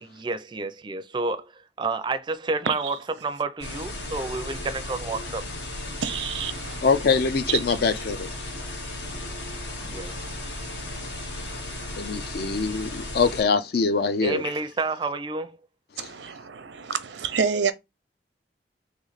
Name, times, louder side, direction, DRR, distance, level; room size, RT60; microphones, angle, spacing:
voice 1, 0.0-3.0 3.2-5.4 9.8-10.1 14.2-15.6, right 3 dB, 25° right, 0.4 m, -30 dB
sound 1, 3.6-13.4, left 1 dB, 75° left, 1.2 m, -35 dB
voice 2, 6.0-6.8 7.5-7.6 16.0-17.7, right 6 dB, 85° right, 0.6 m, -28 dB
voice 3, 6.8-8.3 12.0-14.4 16.0-16.1, left 4 dB, 60° left, 0.5 m, -23 dB
3.1 x 3.1 x 3.9 m
head